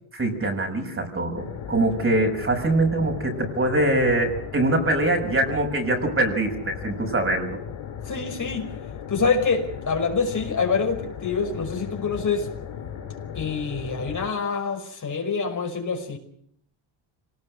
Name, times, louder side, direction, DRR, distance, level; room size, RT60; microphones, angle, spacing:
voice 1, 0.1-7.6, right 2 dB, 25° right, 3 dB, 6.4 m, -23 dB
sound 1, 1.3-14.3, left 8 dB, 80° left, 6.0 m, -36 dB
voice 2, 8.0-8.7 9.1-12.5 13.4-16.2, left 5 dB, 40° left, 3 dB, 5.5 m, -26 dB
26.0 x 19.0 x 6.6 m, 0.68 s
cardioid pair, 115°, 47 cm